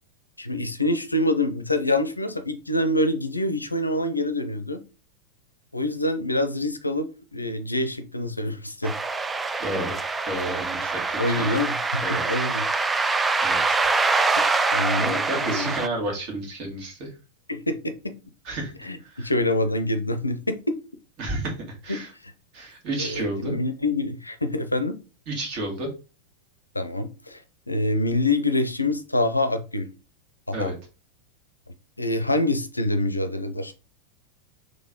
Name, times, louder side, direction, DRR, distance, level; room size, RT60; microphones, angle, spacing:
voice 1, 0.4-4.8 5.7-7.1 7.3-8.9 11.2-12.6 14.7-15.7 17.5-18.1 18.8-20.8 22.2-22.3 23.0-24.9 26.7-27.4 27.7-29.9 30.5-30.7 32.0-33.7, left 1 dB, 85° left, 0.5 m, -26 dB
sound 1, 8.8-15.9, right 3 dB, 15° right, 0.3 m, -24 dB
voice 2, 9.6-11.6 12.0-12.2 13.4-13.8 14.9-17.1 18.4-19.3 21.2-22.1 22.5-23.5 25.3-25.9 30.5-30.7, right 1 dB, 40° right, 2.1 m, -31 dB
3.9 x 3.2 x 3.7 m
figure-of-eight pair, 90°, 0 cm